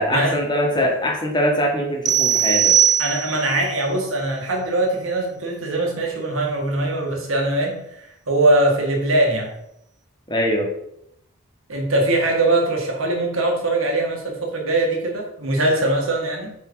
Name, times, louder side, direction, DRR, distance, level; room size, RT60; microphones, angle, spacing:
voice 1, 0.0-2.8 10.3-10.7, equal, 20° left, 0 dB, 1.5 m, -22 dB
sound 1, 2.1-3.6, right 9 dB, 20° right, 0.4 m, -18 dB
voice 2, 3.0-9.5 11.7-16.5, right 2 dB, 80° right, 0 dB, 1.8 m, -21 dB
6.0 x 4.9 x 4.8 m, 0.78 s
head